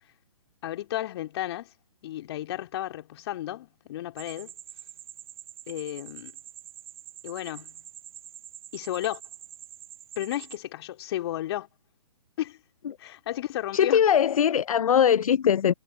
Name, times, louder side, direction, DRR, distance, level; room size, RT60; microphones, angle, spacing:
voice 1, 0.6-1.7 2.0-4.5 5.7-6.3 7.2-7.8 8.7-9.2 10.2-11.7 12.4-12.6 13.0-14.0, left 13 dB, 40° left, 3.1 m, -33 dB
sound 1, 4.2-10.6, right 11 dB, 10° right, 0.7 m, -46 dB
voice 2, 13.7-15.7, left 8 dB, 65° left, 0.5 m, -21 dB
figure-of-eight pair, 130°, 20 cm